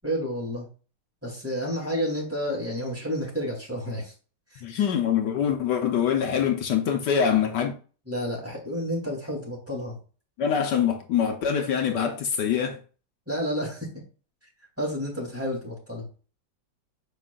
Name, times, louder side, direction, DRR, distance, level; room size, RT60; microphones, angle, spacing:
voice 1, 0.0-0.7 1.2-4.1 4.5-4.6 8.1-10.0 13.3-14.0 14.8-16.0, equal, 5° right, 3.1 m, -30 dB
voice 2, 4.6-7.7 10.4-12.8, left 8 dB, 75° left, 1.4 m, -24 dB
7.8 x 5.2 x 2.4 m
omnidirectional pair, 1.9 m